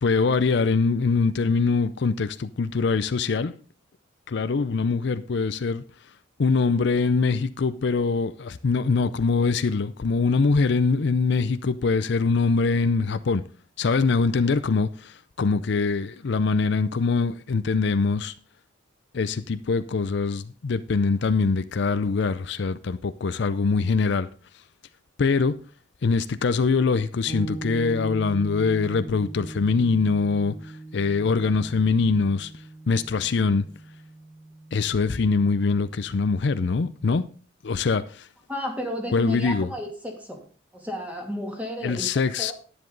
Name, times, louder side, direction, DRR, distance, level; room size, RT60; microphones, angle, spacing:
voice 1, 0.0-3.5 4.3-5.8 6.4-13.4 13.8-18.3 19.1-24.3 25.2-25.6 26.0-32.5 32.9-33.6 34.7-37.2 37.6-38.3 39.1-39.7 41.8-42.5, left 4 dB, 60° left, 0.5 m, -23 dB
sound 1, 27.3-36.9, right 2 dB, 35° right, 5.6 m, -40 dB
voice 2, 38.5-40.4 40.7-42.1 42.4-42.5, equal, 10° right, 2.5 m, -32 dB
10.5 x 9.8 x 3.9 m
head